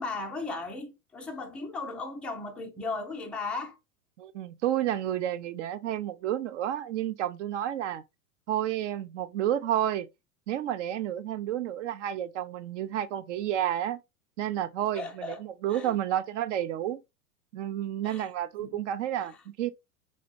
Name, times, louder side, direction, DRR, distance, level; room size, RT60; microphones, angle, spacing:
voice 1, 0.0-3.8 14.9-15.4 15.7-16.0 18.0-18.3 18.6-18.9 19.2-19.4, left 3 dB, 5° left, 0.3 m, -36 dB
voice 2, 4.2-8.0 8.5-10.1 10.5-14.0 14.4-17.0 17.5-19.7, right 11 dB, 55° right, 0.7 m, -30 dB
5.3 x 4.2 x 2.3 m
figure-of-eight pair, 90°, 44 cm